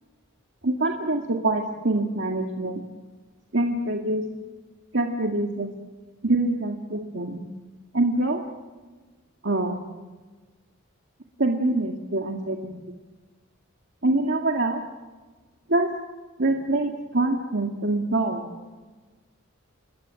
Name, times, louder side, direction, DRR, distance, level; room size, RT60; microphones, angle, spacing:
voice 1, 0.6-2.8 3.5-4.2 4.9-5.7 6.2-7.4 7.9-8.4 9.4-9.8 11.4-13.0 14.0-14.8 15.7-15.9 16.4-18.5, right 2 dB, 60° right, 1 dB, 2.0 m, -25 dB
28.5 x 22.0 x 7.6 m, 1.3 s
head